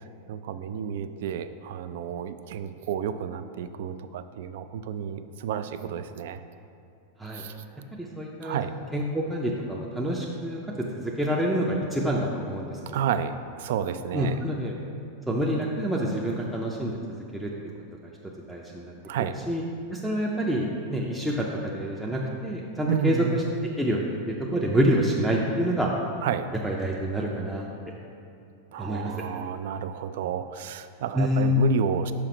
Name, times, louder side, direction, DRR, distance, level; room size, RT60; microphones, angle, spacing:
voice 1, 0.3-6.4 7.3-7.5 8.4-8.7 12.9-14.4 19.0-19.4 22.9-23.4 26.2-26.5 28.7-32.1, right 8 dB, 65° right, 11 dB, 0.3 m, -31 dB
voice 2, 7.9-8.6 8.9-10.6 11.0-12.8 14.1-14.7 15.3-16.9 17.3-17.5 18.5-18.9 19.5-19.6 19.9-23.4 23.8-25.9 26.6-27.7 28.8-29.1 31.1-31.6, equal, 5° right, -3 dB, 0.4 m, -27 dB
5.9 x 4.9 x 4.9 m, 2.6 s
supercardioid pair, 155°, 0 cm